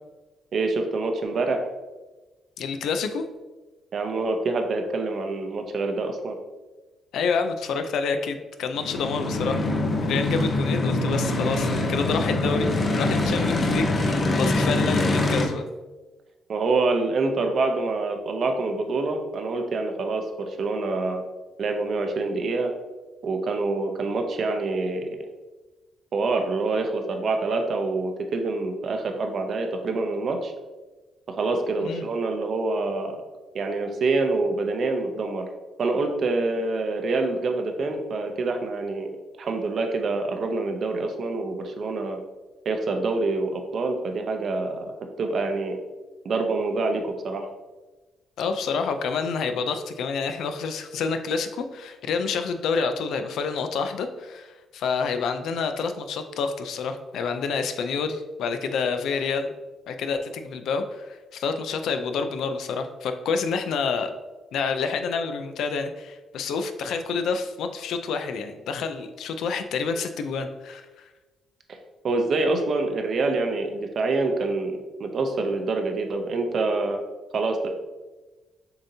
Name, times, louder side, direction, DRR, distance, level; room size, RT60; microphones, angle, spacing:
voice 1, 0.5-1.7 3.9-6.4 16.5-21.2 21.6-22.7 23.2-25.1 26.1-30.5 31.3-33.2 33.5-35.5 35.8-39.1 39.4-42.2 42.7-44.9 45.2-45.8 46.2-47.5 72.0-77.0 77.3-77.7, right 3 dB, 55° right, 5 dB, 0.6 m, -26 dB
voice 2, 2.6-3.2 7.1-9.6 10.0-12.7 13.0-15.7 31.8-32.1 48.4-59.5 59.9-64.1 64.5-71.0, left 5 dB, 80° left, 8 dB, 0.4 m, -28 dB
sound 1, 8.8-15.5, left 2 dB, 40° left, 0.7 m, -24 dB
6.7 x 2.7 x 2.7 m, 1.2 s
cardioid pair, 90°, 0 cm